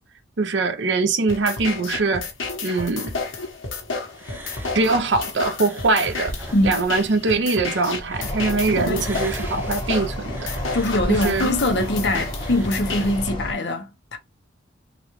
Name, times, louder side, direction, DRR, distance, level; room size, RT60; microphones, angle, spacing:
voice 1, 0.4-2.3 2.6-3.2 4.7-6.3 6.6-10.5 11.1-11.5, right 3 dB, 60° right, 0.6 m, -22 dB
sound 1, 1.3-13.3, left 4 dB, 75° left, 1.1 m, -31 dB
sound 2, 4.1-8.5 8.8-13.3, right 1 dB, 10° right, 0.5 m, -38 dB
sound 3, 8.2-13.5, equal, 25° left, 1.3 m, -32 dB
voice 2, 8.8-9.1 10.7-14.2, left 1 dB, 60° left, 0.8 m, -23 dB
3.8 x 2.3 x 3.0 m
head